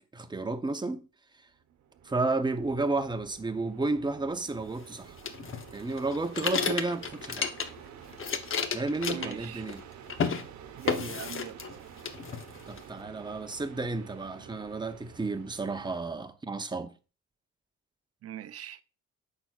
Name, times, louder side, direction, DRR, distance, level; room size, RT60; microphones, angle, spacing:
voice 1, 0.1-1.1 2.0-5.2 5.7-7.5 8.7-9.8 12.7-16.9, right 3 dB, 15° right, 0.7 m, -32 dB
sound 1, 1.5-16.0, right 9 dB, 75° right, 0.9 m, -50 dB
sound 2, 5.2-7.9 8.1-9.8 10.1-10.4 10.9-11.8 12.0-12.8, left 6 dB, 45° left, 0.8 m, -32 dB
voice 2, 9.1-9.7 10.8-11.6 18.2-18.8, right 11 dB, 50° right, 0.6 m, -41 dB
8.6 x 5.9 x 2.3 m
cardioid pair, 90°, 30 cm